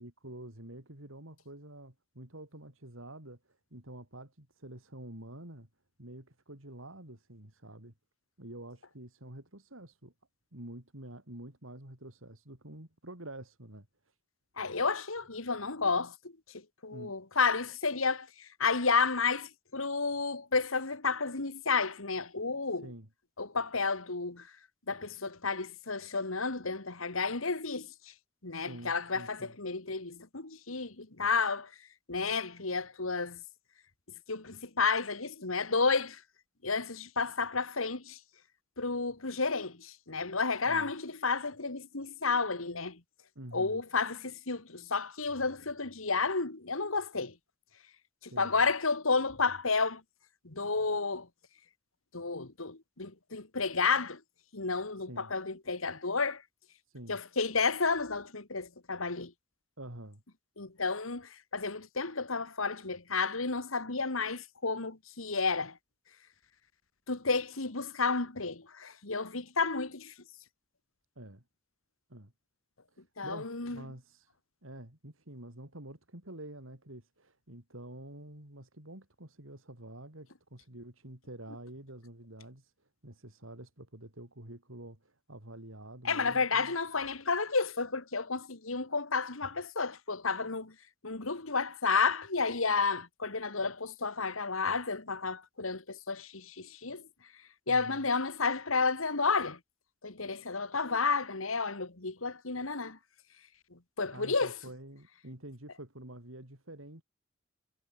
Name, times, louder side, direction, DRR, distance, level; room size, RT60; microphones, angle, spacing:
voice 1, 0.0-5.7 6.0-7.9 8.4-10.1 10.5-14.1 16.9-17.1 22.8-23.1 28.5-29.6 40.6-40.9 43.3-43.8 48.3-48.7 54.9-55.3 56.9-57.2 59.8-60.2 71.2-71.4 72.1-72.3 72.9-74.3 74.6-86.7 97.7-98.0 104.1-107.0, right 1 dB, 75° right, 4.8 m, -48 dB
voice 2, 14.6-22.9 23.4-24.5 24.9-28.1 28.4-31.7 32.1-33.4 34.3-36.2 36.6-38.2 38.8-43.0 43.5-47.3 48.2-50.0 50.4-51.3 52.1-54.2 54.5-56.4 57.1-59.3 60.6-65.8 67.1-70.1 73.2-73.8 86.0-90.7 91.0-97.1 97.7-99.6 100.0-103.0 103.7-104.5, left 4 dB, 80° left, 2.4 m, -31 dB
head